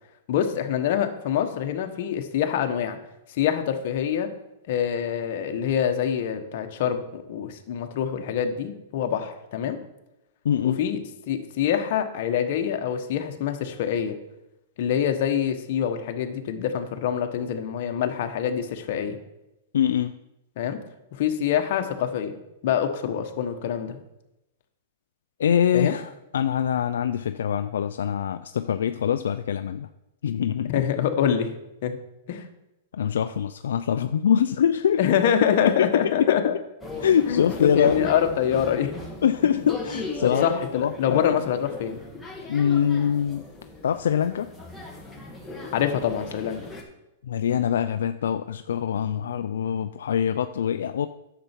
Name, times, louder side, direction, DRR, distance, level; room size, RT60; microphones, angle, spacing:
voice 1, 0.3-3.0 3.3-4.3 4.7-9.8 10.6-11.0 11.3-14.1 14.8-19.2 20.6-20.8 21.1-22.4 22.6-24.0 25.7-26.0 30.7-31.5 31.8-32.0 32.3-32.4 35.0-36.5 37.3-38.9 39.4-39.6 40.4-42.0 45.7-46.6, left 9 dB, 55° left, 5 dB, 1.2 m, -25 dB
voice 2, 10.4-10.8 19.7-20.1 25.4-29.9 30.2-30.8 32.9-35.0 35.8-35.9 36.2-36.3 37.0-38.1 39.2-40.5 40.7-41.4 42.5-43.5 43.8-44.5 47.2-51.1, left 8 dB, 85° left, 9 dB, 0.4 m, -24 dB
sound 1, 36.8-46.8, left 2 dB, 5° left, 1.6 m, -37 dB
10.0 x 6.8 x 4.5 m, 0.92 s
hypercardioid pair, 140°, 0 cm